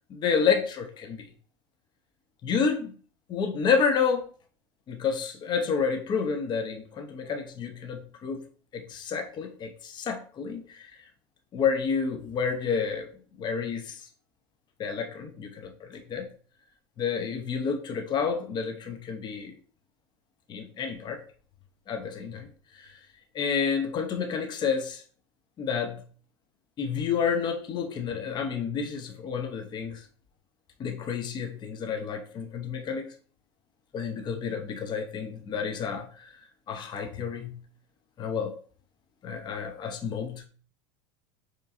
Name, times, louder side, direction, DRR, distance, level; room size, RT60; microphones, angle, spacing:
voice 1, 0.1-1.2 2.4-3.0 3.3-4.2 4.9-8.4 8.7-10.9 11.5-13.1 13.4-14.0 14.8-16.3 17.0-19.5 20.5-21.2 21.9-22.5 23.3-25.0 25.6-26.0 26.8-30.0 30.8-33.1 33.9-36.1 36.7-37.6 38.2-38.5 39.2-40.5, left 6 dB, 30° left, 5 dB, 0.7 m, -29 dB
4.7 x 3.0 x 2.6 m, 0.42 s
supercardioid pair, 115°, 14 cm